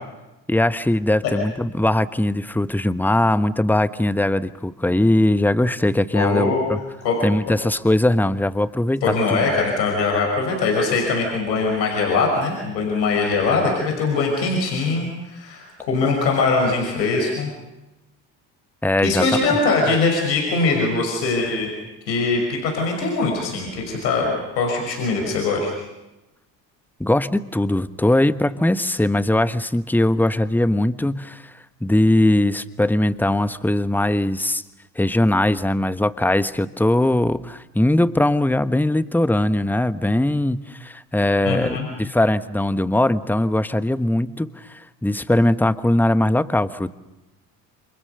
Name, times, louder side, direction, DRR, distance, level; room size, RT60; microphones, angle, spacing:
voice 1, 0.5-6.8 7.2-9.4 18.8-19.6 27.0-31.5 31.8-34.6 34.9-46.9, left 1 dB, 5° left, 13 dB, 1.3 m, -20 dB
voice 2, 6.1-6.7 7.0-7.2 9.0-17.5 19.0-21.7 22.1-25.7 41.4-41.9, left 3 dB, 85° left, 0 dB, 6.0 m, -22 dB
28.5 x 27.5 x 6.8 m, 1.0 s
hypercardioid pair, 60°, 50 cm